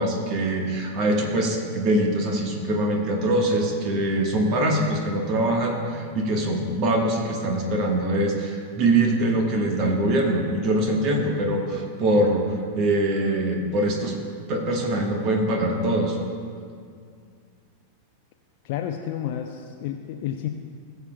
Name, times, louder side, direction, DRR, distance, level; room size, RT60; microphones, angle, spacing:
voice 1, 0.0-12.4 12.8-14.2 14.5-16.2, right 1 dB, 40° right, 2 dB, 1.3 m, -23 dB
voice 2, 18.6-20.5, left 10 dB, 50° left, 4 dB, 0.5 m, -30 dB
19.0 x 6.9 x 2.3 m, 2.2 s
figure-of-eight pair, 90°, 0 cm